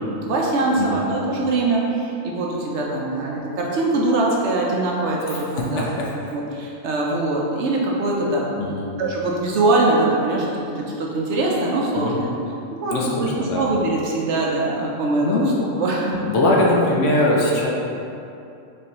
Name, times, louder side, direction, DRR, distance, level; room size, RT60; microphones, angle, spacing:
voice 1, 0.1-5.9 6.3-8.4 9.0-12.3 12.8-15.4 15.8-16.2, right 2 dB, 65° right, -2 dB, 0.8 m, -22 dB
voice 2, 0.8-1.1 5.3-6.1 8.6-8.9 11.9-12.2 12.9-13.6 15.2-15.5 16.1-17.7, left 2 dB, 65° left, -3 dB, 1.0 m, -21 dB
4.8 x 3.3 x 3.0 m, 2.7 s
omnidirectional pair, 1.4 m